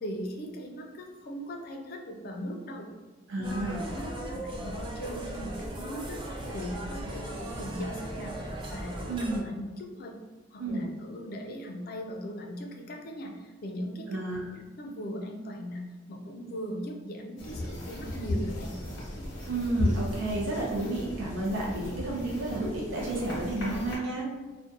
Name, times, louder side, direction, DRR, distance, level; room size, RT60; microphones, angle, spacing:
voice 1, 0.0-2.9 3.4-3.5 3.9-10.1 10.5-14.2 14.5-15.8 16.1-18.8, equal, 50° left, 1 dB, 0.4 m, -39 dB
voice 2, 3.3-3.9 9.1-9.5 10.6-10.9 14.1-14.6 19.5-24.3, right 2 dB, 85° right, -3 dB, 0.5 m, -31 dB
sound 1, 3.4-9.4, right 1 dB, 25° right, 0.3 m, -38 dB
sound 2, 17.4-24.0, left 1 dB, 90° left, 0.8 m, -35 dB
2.4 x 2.1 x 2.6 m, 1.3 s
head